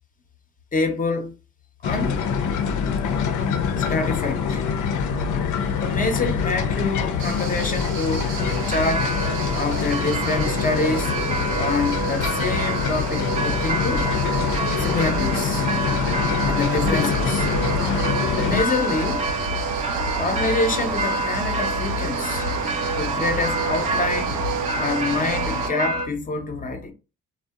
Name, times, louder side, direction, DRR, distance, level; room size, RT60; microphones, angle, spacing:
voice 1, 0.7-1.3 1.8-2.2 3.9-4.6 5.8-8.3 8.7-9.2 9.5-11.1 11.5-14.1 14.8-15.6 16.4-17.5 18.4-19.3 20.2-22.4 23.0-24.4 24.8-26.9, left 3 dB, 25° left, 0.6 m, -26 dB
sound 1, 1.8-18.6, left 6 dB, 75° left, 0.5 m, -25 dB
sound 2, 7.2-25.7, right 4 dB, 85° right, 0.5 m, -30 dB
sound 3, 8.4-26.1, right 2 dB, 25° right, 0.5 m, -28 dB
2.5 x 2.1 x 2.3 m
cardioid pair, 90°, 30 cm